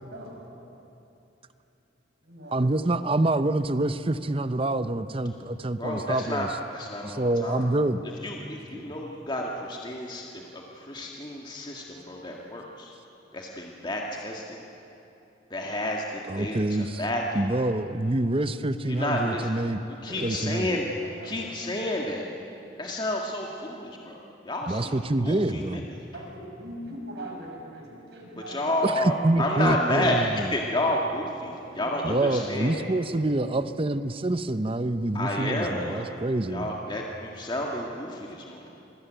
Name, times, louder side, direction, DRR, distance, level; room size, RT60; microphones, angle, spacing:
voice 1, 0.1-0.4 2.2-2.8 20.1-20.4 21.2-21.4 22.5-22.6 26.1-28.7 28.9-29.1 31.4-32.2 32.6-32.8, right 1 dB, 65° right, -1 dB, 6.5 m, -41 dB
voice 2, 2.5-6.5 7.0-8.0 8.7-8.9 16.3-17.0 17.3-19.8 20.2-20.8 24.7-25.8 28.8-30.5 32.0-36.7, right 2 dB, 30° right, 12 dB, 0.8 m, -26 dB
voice 3, 5.8-7.7 8.2-12.9 13.3-14.6 15.5-17.5 18.8-19.5 20.0-20.9 21.2-22.3 22.8-25.0 25.2-26.0 28.3-32.8 35.1-36.1 36.5-38.8, left 1 dB, 25° left, -1 dB, 1.9 m, -31 dB
27.5 x 21.0 x 9.1 m, 2.9 s
head